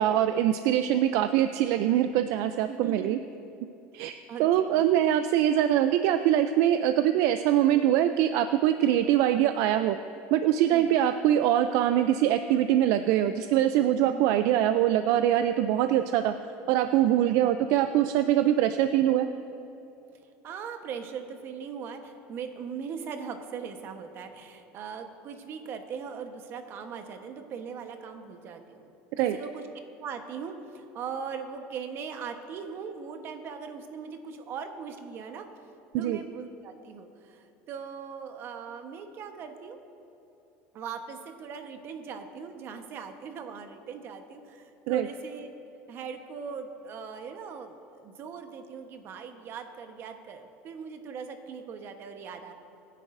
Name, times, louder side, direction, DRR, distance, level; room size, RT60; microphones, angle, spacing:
voice 1, 0.0-3.2 3.9-4.1 4.4-10.0 10.3-16.3 16.7-19.3 29.2-29.4 35.9-36.2 44.9-45.0, right 11 dB, 65° right, 9 dB, 0.4 m, -23 dB
voice 2, 2.7-3.2 3.9-4.9 10.7-10.9 14.0-14.3 20.2-28.9 29.2-29.7 30.0-35.5 36.0-39.8 40.7-45.5 45.9-52.5, right 6 dB, 45° right, 6 dB, 1.1 m, -40 dB
23.5 x 10.0 x 2.6 m, 2.9 s
cardioid pair, 135°, 5 cm